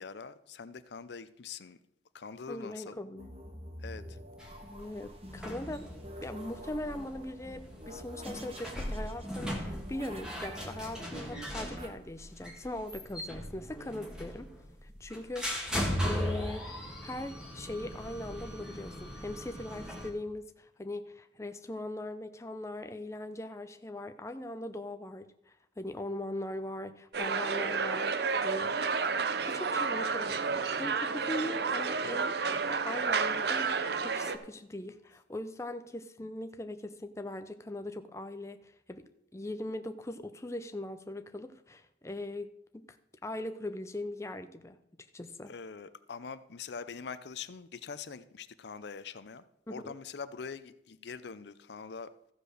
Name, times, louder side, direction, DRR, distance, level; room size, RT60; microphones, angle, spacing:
voice 1, 0.0-1.8 2.1-3.0 3.8-4.0 45.5-49.4 49.7-52.1, left 5 dB, 65° left, 14 dB, 0.5 m, -43 dB
voice 2, 2.5-3.3 4.6-5.9 6.2-14.5 14.8-32.4 32.7-43.0 43.2-44.8 45.1-45.5 49.7-50.0, left 1 dB, 15° left, 8 dB, 0.5 m, -40 dB
sound 1, 3.2-11.9, equal, 30° right, 1.4 m, -47 dB
sound 2, 4.4-20.1, equal, 5° right, 1.8 m, -38 dB
sound 3, 27.1-34.4, right 5 dB, 60° right, 0.7 m, -31 dB
14.0 x 5.1 x 6.5 m, 0.79 s
head